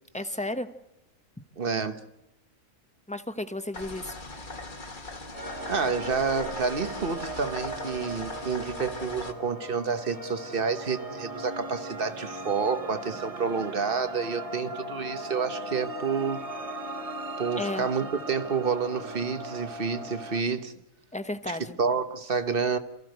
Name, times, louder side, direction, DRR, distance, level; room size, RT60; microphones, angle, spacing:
voice 1, 0.1-0.7 3.1-4.1 17.6-17.9 21.1-21.8, left 1 dB, 5° left, 0.9 m, -33 dB
voice 2, 1.6-2.0 5.7-16.4 17.4-20.7 21.5-22.8, right 5 dB, 45° right, 1.3 m, -29 dB
sound 1, 3.7-9.3, left 2 dB, 40° left, 1.8 m, -40 dB
sound 2, 5.3-20.4, right 1 dB, 25° right, 1.7 m, -38 dB
28.0 x 14.5 x 7.9 m
omnidirectional pair, 1.4 m